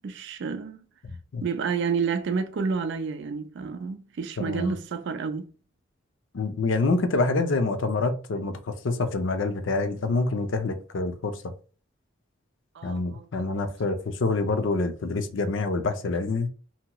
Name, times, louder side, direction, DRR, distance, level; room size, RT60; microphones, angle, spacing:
voice 1, 0.0-0.8 1.4-5.5 12.7-13.3, right 5 dB, 60° right, 0.4 m, -30 dB
voice 2, 1.0-1.4 4.4-4.7 6.3-11.4 12.8-16.5, left 3 dB, 65° left, 0.5 m, -26 dB
2.9 x 2.8 x 2.2 m
head